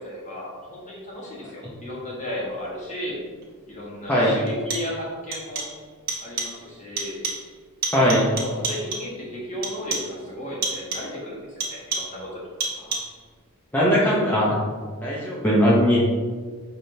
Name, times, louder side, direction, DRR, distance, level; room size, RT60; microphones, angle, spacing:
voice 1, 0.0-3.2 3.7-5.7 6.2-7.2 8.2-12.5, left 1 dB, 35° left, -4 dB, 1.2 m, -34 dB
sound 1, 3.4-3.5 4.5-5.0 5.3-5.8 6.1-6.6 7.0-7.5 7.8-9.2 9.6-10.2 10.6-11.2 11.6-12.2 12.6-13.2, right 3 dB, 45° right, 0.9 m, -31 dB
voice 2, 7.9-8.2 13.7-14.5 15.0-16.0, equal, 10° left, -8 dB, 0.6 m, -19 dB
5.6 x 3.4 x 2.6 m, 1.5 s
head